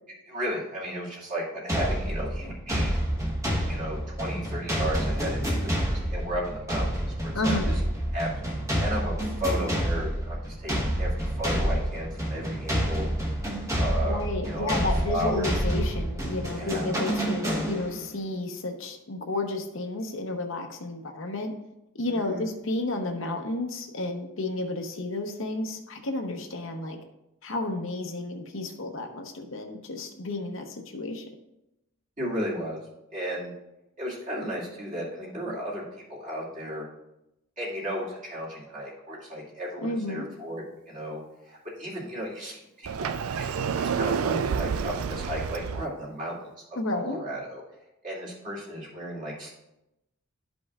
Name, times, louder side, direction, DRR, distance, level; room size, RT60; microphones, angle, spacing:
voice 1, 0.3-2.9 3.7-7.5 8.1-13.1 13.8-14.7 15.1-15.5 16.6-16.9 22.1-22.4 32.2-32.8 33.1-33.5 34.0-35.8 36.1-36.9 37.6-46.4 46.9-47.6 48.0-49.5, equal, 35° right, -6 dB, 2.3 m, -34 dB
sound 1, 1.7-18.1, equal, 15° right, 1.1 m, -28 dB
voice 2, 7.3-7.7 14.0-21.5 21.9-27.0 27.4-31.2 39.8-40.3 46.8-47.2, left 2 dB, 60° left, 4 dB, 0.8 m, -32 dB
Sliding door, 42.9-45.9, right 6 dB, 75° right, 0.4 m, -29 dB
12.0 x 5.3 x 2.4 m, 0.89 s
head